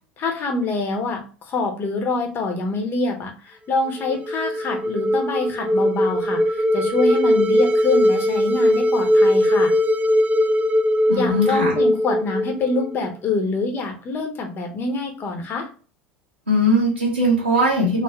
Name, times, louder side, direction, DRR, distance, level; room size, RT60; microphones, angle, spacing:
voice 1, 0.2-9.7 11.1-15.7, left 3 dB, 40° left, 4 dB, 1.1 m, -25 dB
sound 1, 3.9-13.1, left 1 dB, 20° right, 0.4 m, -20 dB
voice 2, 11.1-11.7 16.5-18.0, equal, 90° right, -6 dB, 0.9 m, -19 dB
3.4 x 3.0 x 3.0 m, 0.37 s
figure-of-eight pair, 75°, 6 cm